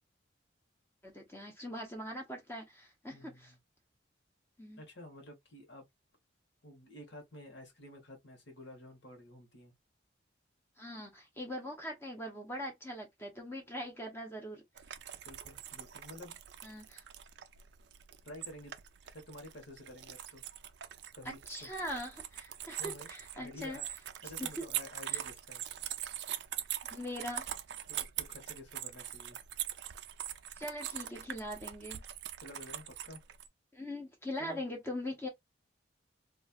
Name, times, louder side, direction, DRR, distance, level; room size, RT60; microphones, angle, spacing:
voice 1, 1.0-3.5 4.6-4.8 10.8-14.6 16.6-17.0 21.2-23.8 24.4-24.6 25.1-25.2 26.9-27.5 30.6-32.0 33.7-35.3, equal, 10° left, 0.6 m, -41 dB
voice 2, 3.1-3.6 4.8-5.8 6.6-9.7 15.2-16.4 18.2-18.7 19.0-20.4 21.1-21.7 22.7-23.9 24.2-25.6 27.9-29.4 32.4-33.2 34.4-34.6, left 1 dB, 60° left, 1.2 m, -51 dB
sound 1, 14.8-33.5, right 11 dB, 55° right, 0.3 m, -42 dB
3.0 x 2.4 x 2.2 m
head